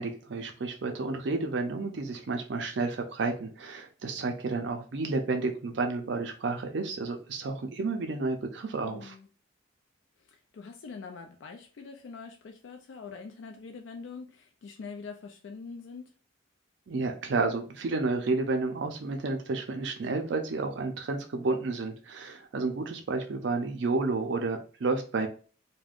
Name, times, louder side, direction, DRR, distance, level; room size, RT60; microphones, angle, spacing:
voice 1, 0.0-9.1 16.9-25.3, right 3 dB, 65° right, 0.4 m, -31 dB
voice 2, 8.8-9.3 10.3-16.1, left 4 dB, 75° left, 0.4 m, -44 dB
2.4 x 2.1 x 3.4 m
head